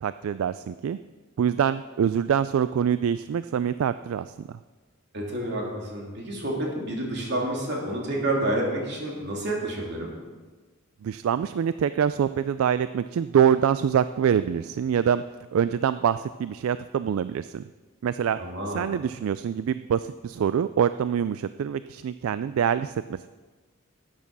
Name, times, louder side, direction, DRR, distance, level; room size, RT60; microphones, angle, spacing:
voice 1, 0.0-1.0 1.4-4.6 11.0-15.2 15.5-17.6 18.0-18.4 18.7-23.3, right 8 dB, 75° right, 13 dB, 0.3 m, -25 dB
voice 2, 5.1-10.1 18.4-18.9, right 1 dB, 50° right, -1 dB, 2.9 m, -29 dB
12.5 x 8.8 x 6.1 m, 1.3 s
head